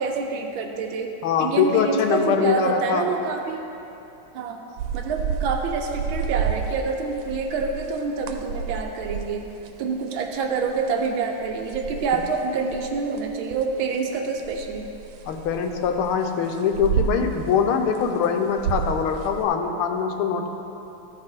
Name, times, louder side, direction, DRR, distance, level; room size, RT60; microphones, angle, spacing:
voice 1, 0.0-1.1 1.4-3.6 4.3-4.6 4.9-9.4 9.8-14.9, right 4 dB, 75° right, 3 dB, 1.4 m, -27 dB
voice 2, 1.2-3.1 15.3-20.5, left 6 dB, 80° left, 5 dB, 1.5 m, -23 dB
sound 1, 4.8-11.1 11.4-17.6 17.9-19.5, right 7 dB, 90° right, 1.5 m, -30 dB
13.0 x 4.8 x 4.4 m, 2.9 s
omnidirectional pair, 2.4 m